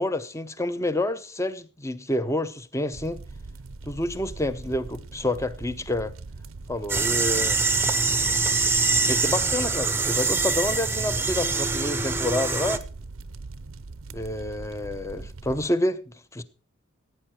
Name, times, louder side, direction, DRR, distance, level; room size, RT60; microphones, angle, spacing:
voice 1, 0.0-3.2 3.8-6.1 6.7-7.6 9.0-12.8 14.1-16.4, left 1 dB, 15° left, 0.8 m, -28 dB
sound 1, 2.9-15.6, right 3 dB, 85° right, 0.7 m, -41 dB
sound 2, 6.9-12.8, right 4 dB, 10° right, 0.8 m, -24 dB
16.5 x 9.0 x 4.4 m
head